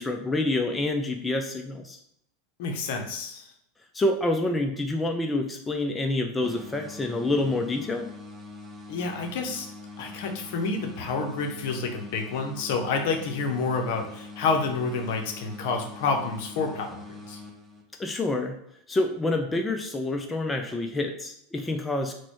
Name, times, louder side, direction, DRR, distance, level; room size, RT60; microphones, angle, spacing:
voice 1, 0.0-2.0 3.9-8.1 18.0-18.6 18.9-22.1, left 2 dB, 15° left, 4 dB, 0.4 m, -27 dB
voice 2, 2.6-3.5 8.9-9.7 10.0-17.0 17.3-17.4, left 4 dB, 60° left, 3 dB, 0.7 m, -29 dB
sound 1, 6.4-18.1, left 2 dB, 25° right, 0.7 m, -43 dB
4.0 x 2.2 x 3.0 m, 0.72 s
hypercardioid pair, 85°, 0 cm